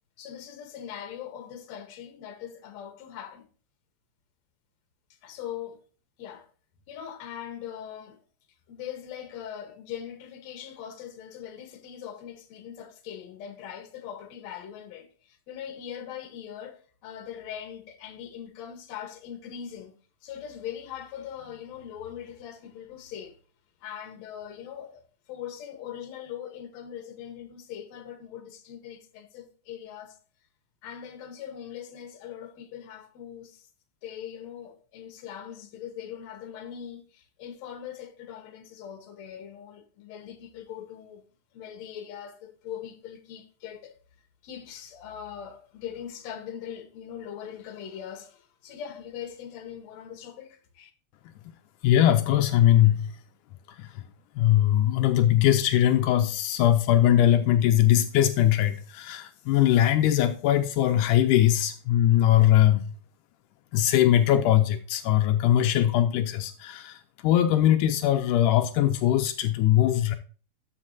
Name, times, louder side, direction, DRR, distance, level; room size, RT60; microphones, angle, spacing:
voice 1, 0.2-3.5 5.2-5.8 6.2-6.5 6.9-8.2 8.7-19.9 20.2-23.4 23.8-25.0 25.3-30.2 30.8-33.7 34.0-41.2 41.5-44.0 44.4-50.9, left 9 dB, 65° left, 2.3 m, -41 dB
voice 2, 51.8-53.2 53.8-53.9 54.4-62.8 63.7-70.2, left 12 dB, 85° left, 2.2 m, -21 dB
13.5 x 5.7 x 2.7 m
omnidirectional pair, 3.6 m